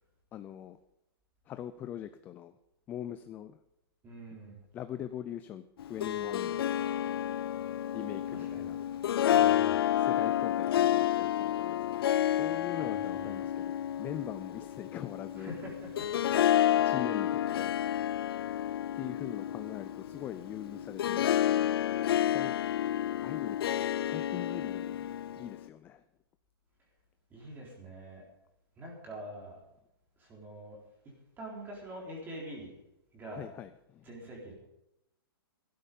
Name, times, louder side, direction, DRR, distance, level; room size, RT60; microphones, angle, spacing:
voice 1, 0.3-0.8 1.5-2.6 2.9-3.6 4.7-6.6 7.9-8.8 10.0-15.5 16.8-17.7 18.9-21.6 21.9-22.5 23.2-23.6 24.0-25.1 25.4-26.0 33.3-34.1, left 10 dB, 15° left, 11 dB, 0.4 m, -42 dB
voice 2, 4.0-4.6 8.3-8.7 9.2-9.8 12.8-13.4 15.4-16.1 27.3-28.2 28.8-29.6 30.2-30.8 31.0-32.7 33.1-33.5 34.0-34.5, right 1 dB, 15° right, -2 dB, 3.9 m, -45 dB
Harp, 5.8-25.6, left 11 dB, 70° left, 0.4 m, -30 dB
15.5 x 12.5 x 5.4 m, 0.86 s
hypercardioid pair, 160°, 13 cm